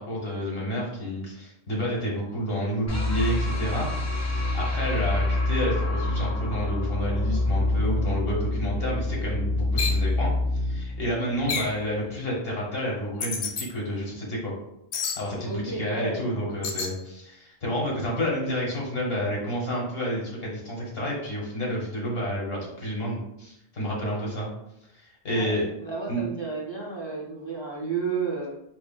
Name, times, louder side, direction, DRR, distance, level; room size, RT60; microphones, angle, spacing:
voice 1, 0.0-4.2 4.5-14.5 15.2-24.5 24.9-25.7 26.1-26.2, equal, 65° left, -3 dB, 1.4 m, -30 dB
sound 1, 2.9-12.0, left 2 dB, 20° left, 0.5 m, -26 dB
sound 2, 9.8-10.0 11.5-11.8 13.2-13.7 14.9-15.2 16.6-16.9, left 5 dB, 90° left, 0.9 m, -29 dB
voice 2, 15.4-16.5 25.3-25.5 25.8-28.5, right 5 dB, 35° right, -4 dB, 0.5 m, -32 dB
4.7 x 3.0 x 2.2 m, 0.81 s
omnidirectional pair, 1.1 m